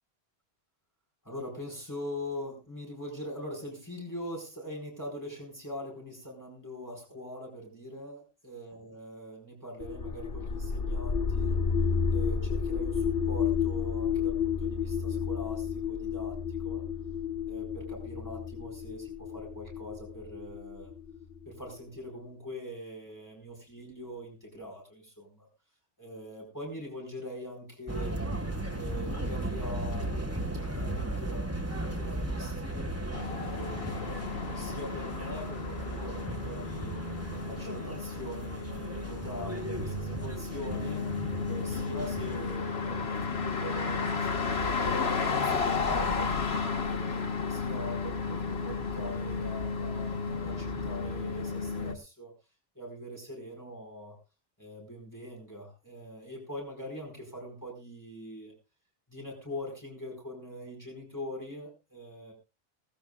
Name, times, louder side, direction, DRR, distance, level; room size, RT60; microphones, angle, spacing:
voice 1, 1.2-11.6 12.1-16.8 17.5-20.9 21.4-25.5 26.0-28.2 28.7-36.9 37.4-52.3 52.7-54.1 54.6-58.5 59.1-62.3, equal, 15° left, 0 dB, 4.7 m, -43 dB
sound 1, 9.8-21.6, left 6 dB, 60° left, 1.2 m, -31 dB
sound 2, 27.9-42.6, right 1 dB, 15° right, 1.6 m, -36 dB
sound 3, 33.1-51.9, left 4 dB, 80° left, 1.8 m, -33 dB
19.5 x 14.5 x 2.4 m, 0.29 s
omnidirectional pair, 1.0 m